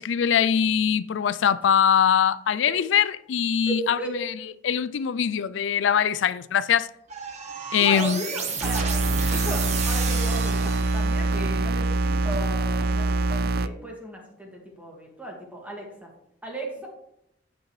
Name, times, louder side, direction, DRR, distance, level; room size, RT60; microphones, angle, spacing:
voice 1, 0.0-4.3 4.6-6.9 7.7-8.2, left 8 dB, 90° left, 0.4 m, -22 dB
voice 2, 3.7-4.1 7.8-16.1 16.4-16.9, right 1 dB, 10° right, 1.9 m, -36 dB
sound 1, 7.1-11.4, right 5 dB, 40° right, 1.1 m, -32 dB
sound 2, 8.6-13.7, right 2 dB, 55° right, 0.4 m, -24 dB
8.8 x 8.3 x 3.2 m
head